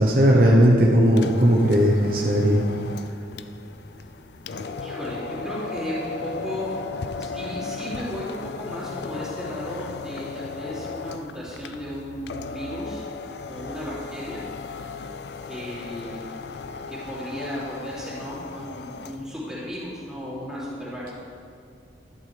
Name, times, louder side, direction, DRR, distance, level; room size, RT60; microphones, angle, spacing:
voice 1, 0.0-2.6, equal, 50° right, -2 dB, 0.9 m, -17 dB
sound 1, 1.1-19.3, left 4 dB, 60° left, 0.4 m, -36 dB
voice 2, 4.8-6.7 7.2-13.1 13.5-14.4 15.5-16.2 16.9-21.1, equal, 5° right, -9 dB, 3.0 m, -35 dB
12.5 x 11.0 x 3.4 m, 2.5 s
head